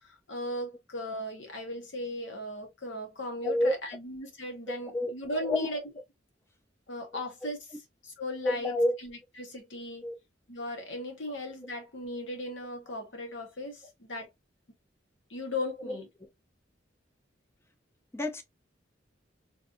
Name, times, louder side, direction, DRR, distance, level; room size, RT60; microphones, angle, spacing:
voice 1, 0.0-5.8 6.9-7.6 8.2-8.7 9.0-10.0 10.5-14.3 15.3-16.1, left 1 dB, 80° left, 1.2 m, -37 dB
voice 2, 3.4-3.8 4.7-5.1 5.4-5.7 7.1-7.2 8.4-8.9 10.0-10.1 15.8-16.3 18.1-18.4, left 1 dB, 15° left, 0.5 m, -29 dB
3.3 x 2.6 x 2.5 m
head